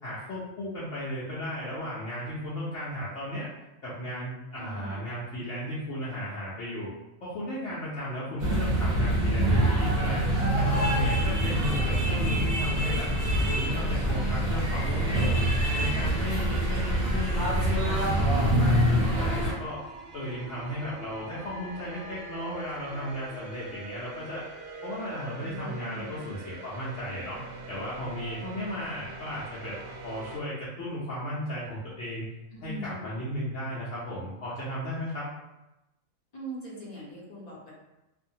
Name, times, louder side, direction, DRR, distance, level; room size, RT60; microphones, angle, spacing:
voice 1, 0.0-3.5 3.8-6.9 7.2-10.2 10.5-13.1 13.5-15.3 15.8-19.8 20.1-24.4 24.8-27.4 27.7-29.8 30.0-32.2 32.6-35.3, equal, 70° left, -9 dB, 0.9 m, -35 dB
voice 2, 4.6-5.0 11.0-11.8 15.7-16.7 25.4-26.3 32.5-33.2 36.3-37.7, equal, 40° left, -5 dB, 0.6 m, -42 dB
sound 1, 8.4-19.5, right 1 dB, 40° right, 0.9 m, -25 dB
sound 2, 15.6-30.4, right 3 dB, 65° right, 0.7 m, -45 dB
2.6 x 2.1 x 2.7 m, 0.95 s
omnidirectional pair, 1.4 m